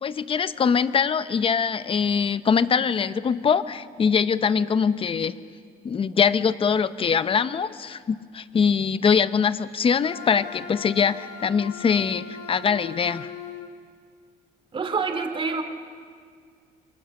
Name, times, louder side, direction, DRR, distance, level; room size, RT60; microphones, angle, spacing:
voice 1, 0.0-5.4 5.8-13.3, left 6 dB, 30° left, 14 dB, 0.8 m, -23 dB
Wind instrument woodwind instrument, 10.0-13.7, left 6 dB, 70° left, 2.8 m, -39 dB
voice 2, 14.7-15.6, right 4 dB, 30° right, 7 dB, 2.6 m, -26 dB
28.0 x 23.5 x 6.5 m, 2.1 s
cardioid pair, 110°, 17 cm